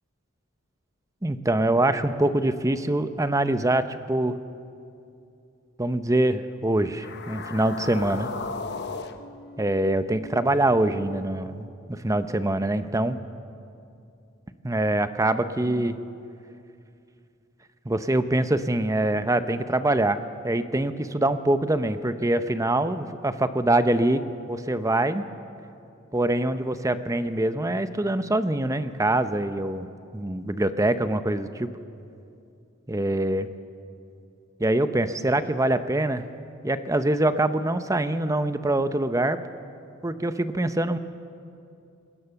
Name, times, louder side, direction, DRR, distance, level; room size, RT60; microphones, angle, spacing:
voice 1, 1.2-4.4 5.8-8.3 9.6-13.2 14.6-16.0 17.8-25.2 26.1-29.9 30.1-31.7 32.9-33.5 34.6-36.3 36.6-39.4 40.0-41.0, right 1 dB, 15° right, 11 dB, 0.8 m, -24 dB
sound 1, 6.8-11.2, left 3 dB, 55° left, 1.1 m, -37 dB
26.5 x 20.0 x 7.0 m, 2.6 s
head